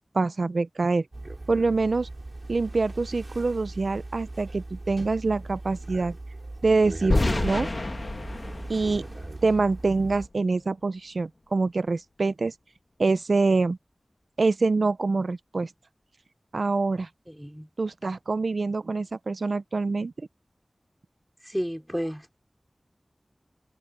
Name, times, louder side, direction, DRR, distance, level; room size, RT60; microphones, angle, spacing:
voice 1, 0.1-1.0 1.5-2.1 2.5-6.2 6.6-7.7 8.7-9.0 9.4-12.5 13.0-13.8 14.4-15.7 16.5-17.1 17.8-20.1, right 3 dB, 90° right, 0.5 m, -25 dB
sound 1, 1.1-10.3, right 2 dB, 50° right, 4.5 m, -39 dB
sound 2, 7.1-10.1, left 2 dB, 55° left, 1.6 m, -28 dB
voice 2, 17.3-17.7 21.4-22.4, equal, ahead, 5.0 m, -32 dB
wide cardioid pair, 50°, 0 cm